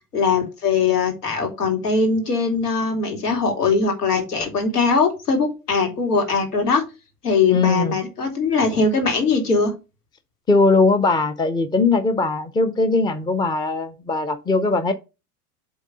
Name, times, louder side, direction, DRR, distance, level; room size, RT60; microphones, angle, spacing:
voice 1, 0.1-6.8 7.2-9.7, left 4 dB, 75° left, 2.8 m, -21 dB
voice 2, 7.5-8.0 10.5-14.9, left 3 dB, 10° left, 0.6 m, -20 dB
8.1 x 3.8 x 5.3 m
hypercardioid pair, 90°, 46 cm